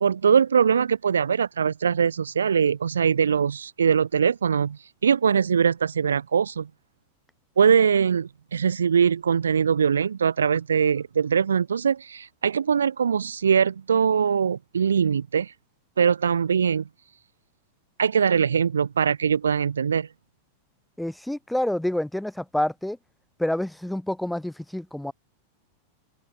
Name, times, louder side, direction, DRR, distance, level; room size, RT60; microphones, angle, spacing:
voice 1, 0.0-6.7 7.6-15.5 16.0-16.8 18.0-20.1, right 7 dB, 70° right, 0.4 m, -22 dB
voice 2, 21.0-23.0 23.4-25.1, left 1 dB, 5° left, 1.1 m, -28 dB
figure-of-eight pair, 90°, 0 cm